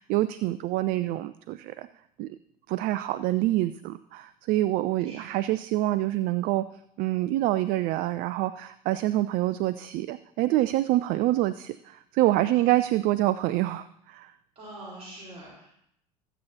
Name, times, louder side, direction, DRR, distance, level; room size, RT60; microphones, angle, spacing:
voice 1, 0.0-1.9 2.2-2.4 2.7-6.7 7.0-14.3, right 15 dB, 45° right, 15 dB, 0.4 m, -26 dB
voice 2, 5.0-5.4 12.5-12.8 14.5-15.7, right 1 dB, 30° right, -5 dB, 4.3 m, -44 dB
19.0 x 8.1 x 2.8 m, 0.75 s
figure-of-eight pair, 70°, 20 cm